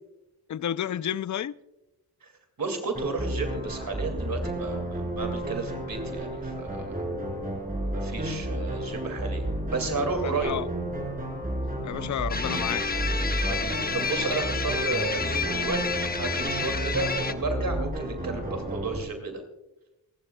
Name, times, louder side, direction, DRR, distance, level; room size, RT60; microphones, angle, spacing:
voice 1, 0.5-1.5 10.2-10.7 11.8-12.8, left 10 dB, 55° left, 0.5 m, -31 dB
voice 2, 2.6-7.0 7.9-10.5 13.4-19.4, right 3 dB, 65° right, 2.5 m, -32 dB
sound 1, 2.9-19.0, right 1 dB, 25° right, 5.9 m, -32 dB
sound 2, 12.3-17.3, left 5 dB, 25° left, 0.8 m, -30 dB
28.5 x 12.0 x 2.3 m
cardioid pair, 60°, 37 cm